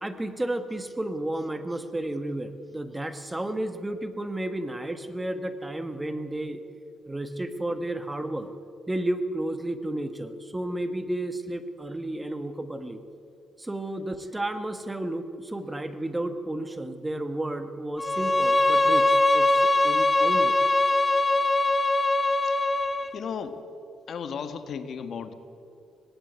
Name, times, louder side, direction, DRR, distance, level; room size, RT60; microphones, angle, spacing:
voice 1, 0.0-6.6 7.1-8.5 8.9-13.0 13.6-20.6, right 1 dB, 10° right, 9 dB, 1.6 m, -32 dB
Bowed string instrument, 18.0-23.1, left 2 dB, 20° left, 1.1 m, -22 dB
voice 2, 22.4-22.8 23.1-23.6 24.1-25.3, left 6 dB, 60° left, 9 dB, 1.5 m, -35 dB
18.5 x 17.0 x 9.4 m, 2.5 s
cardioid pair, 90°, 0 cm